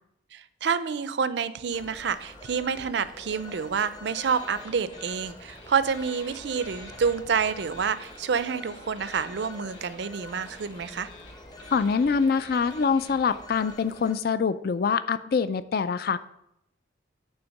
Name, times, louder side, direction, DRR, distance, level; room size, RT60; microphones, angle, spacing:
voice 1, 0.3-11.1, right 6 dB, 60° right, 13 dB, 0.4 m, -28 dB
Telephone, 1.7-14.1, left 1 dB, 20° left, 0.8 m, -46 dB
sound 1, 4.1-5.2 5.5-13.7, left 3 dB, 75° left, 1.7 m, -50 dB
voice 2, 11.7-16.2, left 5 dB, 50° left, 14 dB, 0.4 m, -25 dB
8.8 x 3.5 x 6.4 m, 0.81 s
head